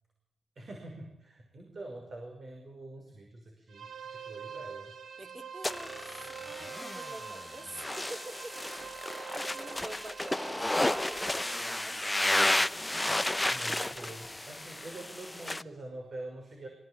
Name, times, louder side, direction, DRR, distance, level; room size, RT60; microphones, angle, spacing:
voice 1, 0.6-5.0 13.5-16.7, right 2 dB, 50° right, 2 dB, 5.9 m, -45 dB
sound 1, 3.7-11.6, right 7 dB, 80° right, 3.3 m, -45 dB
voice 2, 5.2-8.6 9.0-12.2, right 1 dB, 25° right, 7 dB, 2.9 m, -47 dB
sound 2, 5.6-15.6, left 1 dB, 10° left, 0.8 m, -32 dB
23.5 x 17.5 x 9.0 m, 0.86 s
wide cardioid pair, 110°, 0 cm